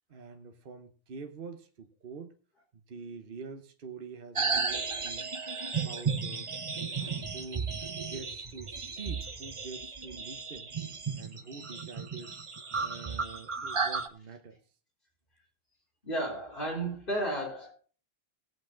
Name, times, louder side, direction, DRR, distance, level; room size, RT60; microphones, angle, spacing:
voice 1, 0.1-2.4 2.7-5.3 5.7-6.5 6.9-7.7 8.0-10.7 11.1-12.4 12.8-14.6, right 5 dB, 60° right, 7 dB, 1.1 m, -46 dB
sound 1, 4.4-14.1, right 5 dB, 35° right, 0.8 m, -34 dB
voice 2, 16.0-17.7, right 1 dB, 55° left, -2 dB, 4.0 m, -33 dB
17.5 x 8.1 x 3.8 m, 0.38 s
omnidirectional pair, 1.1 m